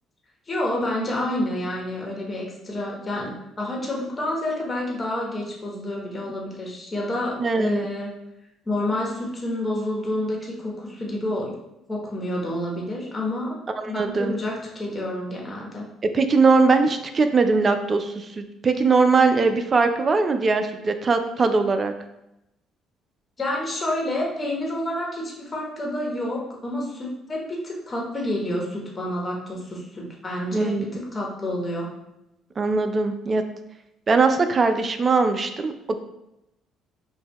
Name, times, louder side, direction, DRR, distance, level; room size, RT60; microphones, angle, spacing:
voice 1, 0.5-8.1 8.6-11.5 11.9-13.6 13.8-15.8 23.4-31.9, left 1 dB, 30° left, -2 dB, 1.1 m, -29 dB
voice 2, 7.4-7.9 13.8-14.3 16.1-21.9 30.5-30.9 32.6-33.4 34.1-35.9, right 4 dB, 35° right, 7 dB, 0.4 m, -21 dB
5.3 x 2.2 x 3.0 m, 0.87 s
supercardioid pair, 75°, 0 cm